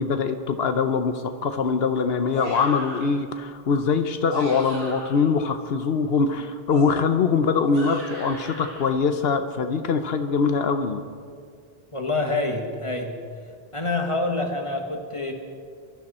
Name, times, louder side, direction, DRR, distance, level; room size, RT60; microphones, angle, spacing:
voice 1, 0.0-11.0, left 5 dB, 75° left, 8 dB, 1.0 m, -23 dB
sound 1, 2.3-3.2 4.1-5.3 6.7-8.8, equal, 85° right, 5.3 m, -37 dB
voice 2, 11.9-13.2 13.7-15.3, left 2 dB, 30° left, 3 dB, 1.7 m, -26 dB
24.0 x 12.5 x 4.3 m, 2.2 s
omnidirectional pair, 1.0 m